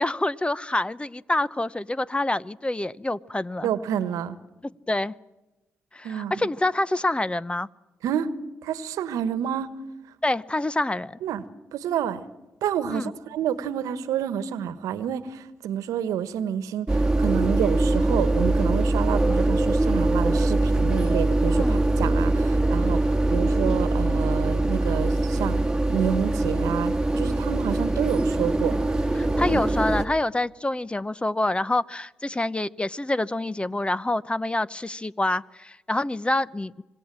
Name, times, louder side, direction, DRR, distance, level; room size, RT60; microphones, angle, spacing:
voice 1, 0.0-3.7 4.6-5.1 5.9-7.7 10.2-11.2 12.9-13.1 21.5-21.8 29.1-36.8, left 2 dB, 20° left, 19 dB, 0.8 m, -27 dB
voice 2, 3.6-4.4 6.0-6.3 8.0-8.4 8.6-9.7 11.2-11.4 11.7-12.2 12.6-28.8 29.5-29.6, right 9 dB, 75° right, 14 dB, 1.3 m, -29 dB
sound 1, 16.9-30.1, right 2 dB, 10° right, 2.0 m, -22 dB
26.0 x 20.5 x 7.6 m, 1.1 s
hypercardioid pair, 40°, 6 cm